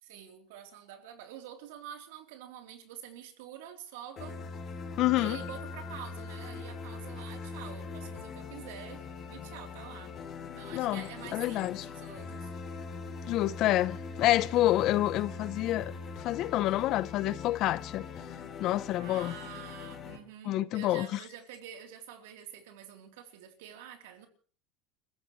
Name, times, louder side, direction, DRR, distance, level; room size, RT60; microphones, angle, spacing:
voice 1, 0.0-4.4 5.2-10.1 10.5-12.5 18.9-24.3, right 10 dB, 80° right, 3.5 m, -47 dB
sound 1, 4.2-20.2, left 4 dB, 35° left, 3.4 m, -42 dB
Mallet percussion, 5.0-7.6, left 11 dB, 70° left, 3.5 m, -49 dB
voice 2, 5.0-5.4 10.7-11.0 11.3-11.8 13.3-15.9 16.2-18.1 18.6-19.3 20.5-21.2, left 15 dB, 50° left, 0.8 m, -28 dB
30.0 x 15.0 x 3.2 m
supercardioid pair, 135°, 0 cm